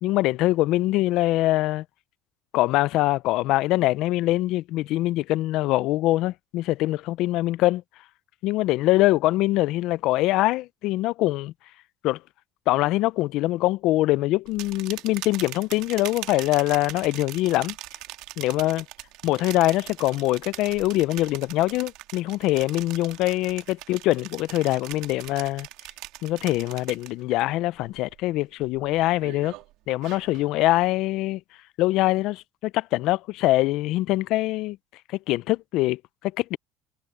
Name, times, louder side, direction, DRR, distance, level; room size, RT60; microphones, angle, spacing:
voice 1, 0.0-1.8 2.5-7.8 8.4-11.5 12.0-12.2 12.7-17.8 18.4-18.8 19.2-25.7 26.2-29.5 29.9-31.4 31.8-34.8 35.3-36.6, left 17 dB, 60° left, 0.4 m, -23 dB
sound 1, 14.5-27.4 27.8-28.2 28.6-30.5, right 17 dB, 75° right, 1.8 m, -41 dB
cardioid pair, 160°, 0 cm